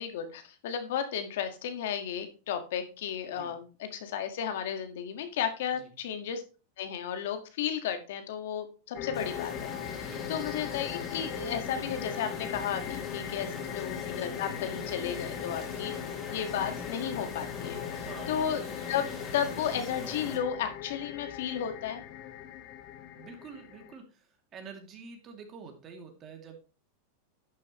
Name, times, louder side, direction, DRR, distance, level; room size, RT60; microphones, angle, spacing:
voice 1, 0.0-6.4 6.8-9.7 10.0-15.9 16.3-18.6 18.9-19.1 19.3-22.0, left 8 dB, 70° left, 8 dB, 1.7 m, -34 dB
sound 1, 8.9-23.9, left 11 dB, 50° left, 1.4 m, -40 dB
sound 2, 9.1-20.4, left 3 dB, 20° left, 3.7 m, -42 dB
voice 2, 10.0-10.4 13.5-13.7 17.9-18.4 23.1-26.6, right 5 dB, 30° right, 4 dB, 2.6 m, -48 dB
11.5 x 6.9 x 3.1 m, 0.34 s
supercardioid pair, 130°, 0 cm